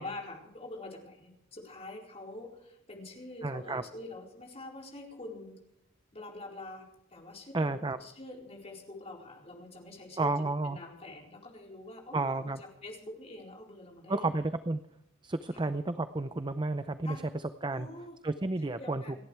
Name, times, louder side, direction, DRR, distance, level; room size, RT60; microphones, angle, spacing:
voice 1, 0.0-5.6 6.1-14.4 15.5-15.7 17.0-17.2 17.7-18.2 18.6-19.2, left 2 dB, 30° left, 0 dB, 4.4 m, -45 dB
voice 2, 3.4-3.8 7.5-8.0 10.2-10.8 12.1-12.6 14.1-14.8 15.2-17.2 17.6-17.9 18.2-19.0, right 2 dB, 20° right, 11 dB, 0.6 m, -31 dB
29.0 x 11.5 x 3.3 m, 0.80 s
head